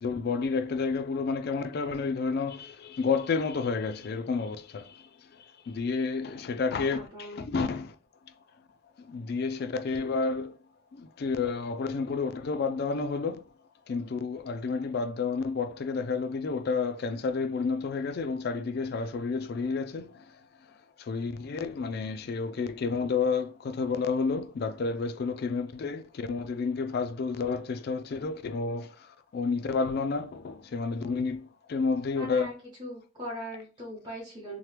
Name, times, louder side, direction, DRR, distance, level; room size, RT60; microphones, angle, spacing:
voice 1, 0.0-7.9 9.0-10.6 10.9-13.5 13.9-20.4 21.0-32.5, left 4 dB, 50° left, 0.3 m, -30 dB
voice 2, 6.7-7.5 32.2-32.5 32.8-34.6, equal, 20° right, 0.9 m, -40 dB
2.9 x 2.1 x 3.2 m
head